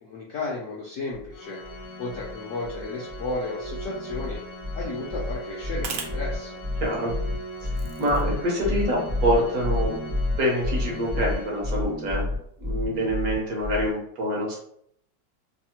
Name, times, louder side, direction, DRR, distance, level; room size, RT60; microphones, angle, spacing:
voice 1, 0.0-1.6 2.0-4.4 4.7-6.6, left 2 dB, 70° left, -4 dB, 0.7 m, -33 dB
sound 1, 1.1-1.3 1.6-2.4 2.6-3.4 3.6-13.9, left 2 dB, 25° right, 0.6 m, -30 dB
Organ, 1.3-12.1, right 1 dB, 85° left, 1.3 m, -40 dB
sound 2, 3.0-8.5, right 5 dB, 80° right, 1.2 m, -43 dB
voice 2, 6.8-7.1 7.6-7.7 8.0-9.9 10.4-12.3 12.6-14.6, equal, 60° right, -2 dB, 1.2 m, -26 dB
3.3 x 2.0 x 2.8 m, 0.71 s
omnidirectional pair, 1.9 m